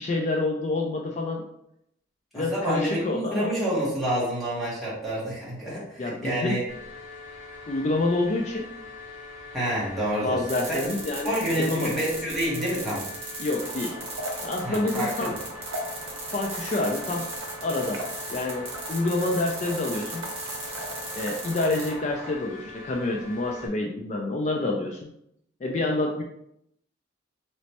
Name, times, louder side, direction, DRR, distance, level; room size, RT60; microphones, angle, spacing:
voice 1, 0.0-1.4 2.3-3.5 6.0-6.6 7.7-8.7 10.2-11.9 13.4-14.0 14.4-15.3 16.3-17.3 17.6-18.0 18.3-20.3 21.1-25.1 25.6-26.2, left 2 dB, 35° left, 1 dB, 0.3 m, -27 dB
voice 2, 2.3-6.6 9.5-10.4 10.7-10.8 11.2-13.1 14.6-15.3, equal, ahead, -9 dB, 1.2 m, -28 dB
sound 1, 6.7-23.7, left 3 dB, 70° left, 0.8 m, -43 dB
sound 2, 10.5-21.9, right 3 dB, 30° right, 0.9 m, -38 dB
sound 3, 13.6-22.4, right 1 dB, 85° right, 0.7 m, -39 dB
3.1 x 3.0 x 2.8 m, 0.76 s
head